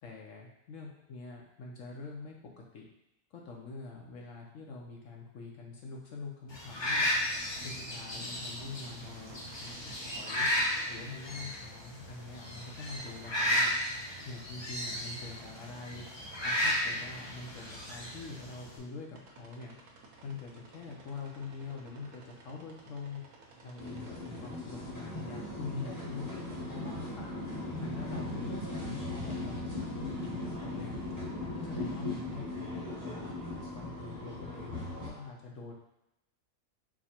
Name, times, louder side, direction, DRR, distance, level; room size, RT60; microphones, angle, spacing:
voice 1, 0.0-2.8 3.3-7.1 7.6-9.7 10.0-10.5 10.9-13.7 14.2-16.0 16.4-19.7 20.2-23.2 23.6-27.3 27.8-30.9 31.4-33.3 33.7-35.7, left 4 dB, 60° left, -1 dB, 1.0 m, -44 dB
sound 1, 6.5-18.8, left 1 dB, 35° left, 0.4 m, -34 dB
sound 2, 6.9-26.8, right 3 dB, 75° right, 1.2 m, -55 dB
sound 3, 23.8-35.1, left 1 dB, 15° left, 1.1 m, -38 dB
4.8 x 2.1 x 4.2 m, 0.87 s
omnidirectional pair, 1.6 m